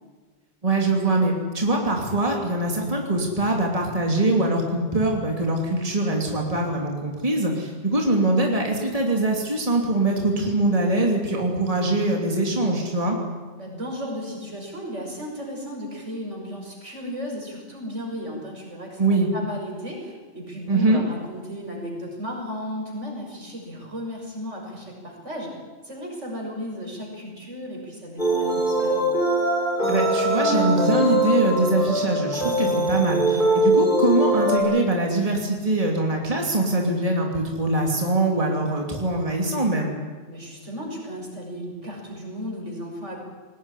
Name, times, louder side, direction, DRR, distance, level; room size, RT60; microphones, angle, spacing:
voice 1, 0.6-13.2 19.0-19.3 20.7-21.0 29.9-40.0, right 2 dB, 30° right, 0 dB, 3.0 m, -23 dB
voice 2, 13.6-25.5 25.8-29.1 40.3-43.2, equal, 80° right, 0 dB, 6.5 m, -35 dB
sound 1, 28.2-34.6, right 1 dB, 45° left, 6.6 m, -22 dB
21.5 x 18.5 x 9.9 m, 1.4 s
omnidirectional pair, 1.2 m